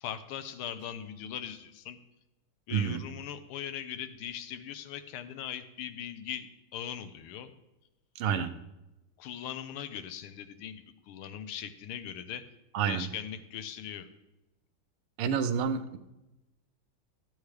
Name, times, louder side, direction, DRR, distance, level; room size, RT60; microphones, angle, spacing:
voice 1, 0.0-2.0 2.7-7.5 8.2-8.5 9.2-12.5 12.8-14.1, left 9 dB, 85° left, 11 dB, 1.6 m, -40 dB
voice 2, 2.7-3.0 8.2-8.5 12.7-13.1 15.2-16.0, right 7 dB, 85° right, 9 dB, 1.6 m, -29 dB
13.0 x 8.4 x 3.2 m, 0.98 s
omnidirectional pair, 2.4 m